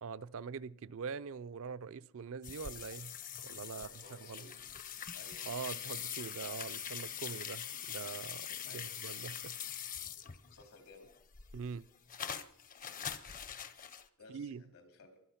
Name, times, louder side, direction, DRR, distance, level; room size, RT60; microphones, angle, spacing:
voice 1, 0.0-3.1 3.4-4.4 5.5-9.6 11.5-11.9 14.3-14.6, right 5 dB, 65° right, 0.4 m, -43 dB
sound 1, 2.4-10.6 11.0-14.1, left 9 dB, 40° left, 0.7 m, -43 dB
voice 2, 3.7-4.5 5.1-5.5 8.6-9.1 10.5-11.1 14.2-15.1, left 3 dB, 80° left, 3.1 m, -57 dB
24.0 x 8.4 x 5.7 m
head